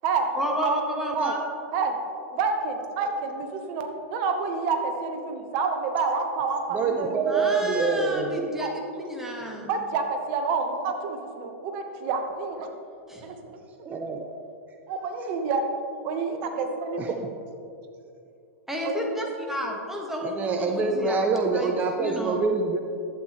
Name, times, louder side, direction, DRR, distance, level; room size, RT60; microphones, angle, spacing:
voice 1, 0.3-1.4 7.3-8.7 8.9-9.7 13.1-13.2 18.7-21.2 21.5-22.5, equal, 5° right, -1 dB, 1.4 m, -32 dB
voice 2, 2.3-7.3 8.6-8.7 9.7-12.7 13.2-13.6 14.9-15.7 16.0-17.2 18.8-19.2, right 4 dB, 45° right, 5 dB, 1.2 m, -28 dB
voice 3, 6.7-8.5 13.8-14.3 17.0-17.3 20.2-22.8, right 4 dB, 20° right, 4 dB, 0.6 m, -25 dB
11.5 x 8.1 x 3.1 m, 2.5 s
hypercardioid pair, 105°, 8 cm